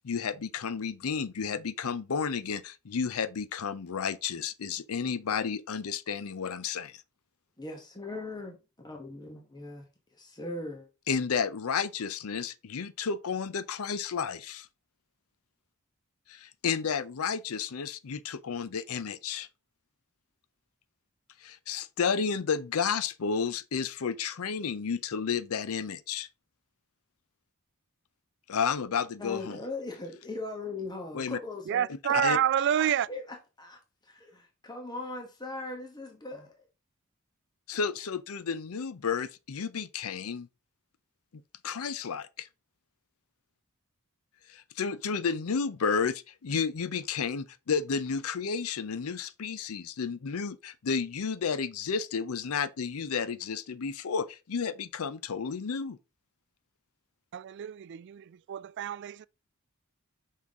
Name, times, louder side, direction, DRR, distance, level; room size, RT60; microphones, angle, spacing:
voice 1, 0.0-7.0 11.1-14.7 16.3-19.5 21.4-26.3 28.5-29.6 31.1-31.4 32.1-32.4 37.7-40.5 41.6-42.5 44.5-56.0, left 6 dB, 75° left, 0.6 m, -32 dB
voice 2, 7.6-8.5 8.8-9.8 10.2-10.9 29.2-31.9 32.7-33.2 33.6-33.8 34.1-36.6, left 2 dB, 20° left, 1.2 m, -39 dB
voice 3, 31.7-33.1 57.3-59.1, right 10 dB, 55° right, 0.3 m, -28 dB
6.0 x 5.6 x 3.6 m
head